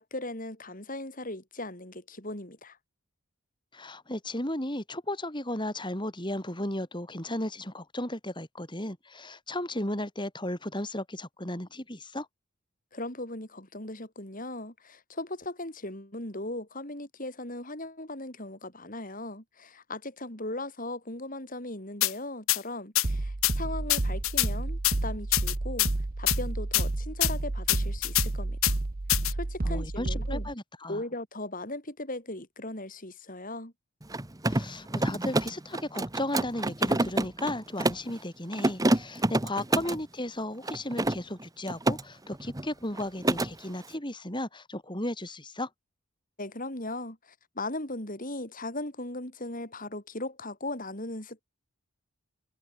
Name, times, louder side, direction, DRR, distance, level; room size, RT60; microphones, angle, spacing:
voice 1, 0.0-2.8 12.9-25.9 26.2-28.8 29.3-30.5 30.9-33.7 46.4-51.4, left 2 dB, 40° left, 4.6 m, -38 dB
voice 2, 3.7-12.3 29.6-31.0 34.4-45.7, left 1 dB, 20° left, 4.9 m, -35 dB
sound 1, 22.0-22.1 22.5-22.6 23.0-23.1 23.4-23.5 23.9-24.5 24.8-25.0 25.3-25.9 26.3-26.4 26.7-26.8 27.2-27.3 27.7-28.3 28.6-28.7 29.1-29.3, left 16 dB, 70° left, 1.7 m, -24 dB
sound 2, 23.0-30.5, right 2 dB, 40° right, 0.8 m, -31 dB
Mechanisms, 34.0-38.1 38.5-40.0 40.6-42.0 42.3-42.7 42.9-43.5, right 1 dB, 15° right, 1.1 m, -28 dB
head